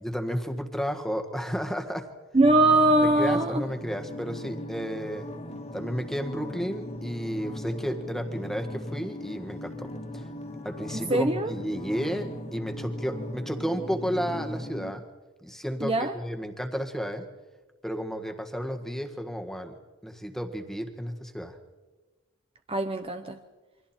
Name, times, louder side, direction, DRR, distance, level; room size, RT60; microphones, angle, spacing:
voice 1, 0.0-2.1 3.2-5.3 5.7-10.2 10.6-15.1 15.4-17.3 17.8-19.8 20.0-21.6, equal, ahead, 5 dB, 1.6 m, -32 dB
voice 2, 2.3-3.6 10.9-11.5 15.8-16.1 22.7-23.4, right 2 dB, 25° right, 7 dB, 0.8 m, -22 dB
sound 1, 2.4-14.9, left 1 dB, 30° left, 1.9 m, -38 dB
28.0 x 24.0 x 4.4 m, 1.2 s
head